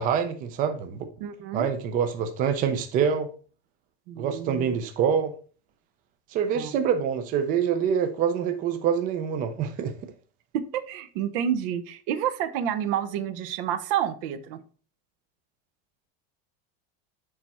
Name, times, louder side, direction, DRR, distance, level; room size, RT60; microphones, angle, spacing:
voice 1, 0.0-1.1 1.5-3.3 4.2-5.3 6.3-10.1, right 7 dB, 30° right, 0.5 m, -26 dB
voice 2, 1.2-1.7 4.1-4.6 6.5-6.7 10.5-14.6, right 9 dB, 65° right, 0.8 m, -29 dB
6.7 x 4.2 x 4.1 m
cardioid pair, 170°, 30 cm